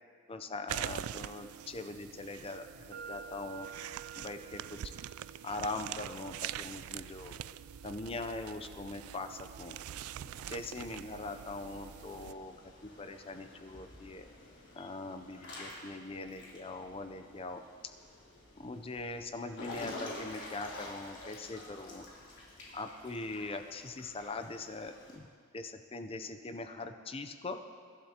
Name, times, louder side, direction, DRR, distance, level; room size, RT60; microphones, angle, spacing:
voice 1, 0.3-3.7 4.2-4.9 5.4-7.4 7.8-9.8 10.5-12.6 12.8-14.3 14.7-17.6 18.6-22.1 22.7-25.3 25.5-27.6, left 3 dB, 25° left, 8 dB, 0.5 m, -41 dB
sound 1, 0.7-12.3, right 10 dB, 80° right, 0.3 m, -44 dB
sound 2, 2.9-10.8, right 7 dB, 45° right, 1.2 m, -53 dB
Water / Splash splatter / Drip, 9.9-25.2, left 1 dB, 55° left, 3.6 m, -49 dB
24.5 x 12.0 x 2.9 m, 2.2 s
head